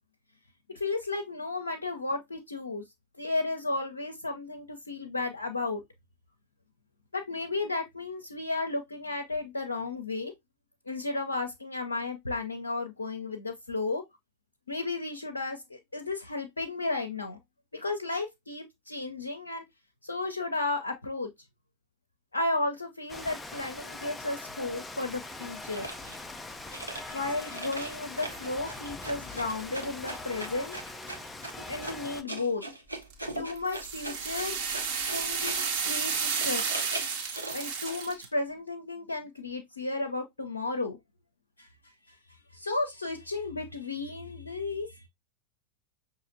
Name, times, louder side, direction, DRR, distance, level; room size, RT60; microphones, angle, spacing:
voice 1, 0.7-2.8 3.2-5.8 7.1-10.3 10.9-14.0 14.7-17.4 17.7-19.6 20.0-21.3 22.3-25.9 27.1-30.7 31.7-32.6 33.4-34.9 35.1-36.8 37.5-41.0 41.6-42.2 42.5-45.1, left 3 dB, 80° left, 0.5 m, -33 dB
Rain, 23.1-32.2, left 2 dB, 10° left, 0.4 m, -42 dB
sound 1, 25.7-26.2 26.7-35.7 36.1-38.1, right 2 dB, 90° right, 0.8 m, -41 dB
sound 2, 33.1-38.3, right 6 dB, 45° right, 1.1 m, -32 dB
5.6 x 2.7 x 2.5 m
figure-of-eight pair, 90°, 0 cm